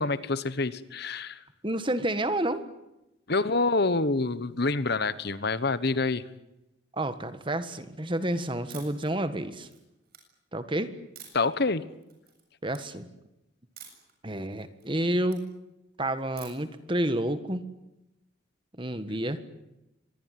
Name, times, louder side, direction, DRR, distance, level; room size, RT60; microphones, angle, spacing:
voice 1, 0.0-1.4 3.3-6.2 11.3-11.8, left 3 dB, 55° left, 15 dB, 1.1 m, -27 dB
voice 2, 1.6-2.6 6.9-9.7 10.5-10.9 12.6-13.1 14.2-15.5 16.0-17.6 18.8-19.4, right 1 dB, 25° right, 11 dB, 1.6 m, -29 dB
sound 1, 8.7-9.1 9.5-10.2 11.2-11.6 12.0-12.4 12.7-12.8 13.8-14.1 14.5-15.4 16.4-16.7, right 9 dB, 50° right, 7.4 m, -48 dB
25.0 x 20.0 x 9.4 m, 0.91 s
head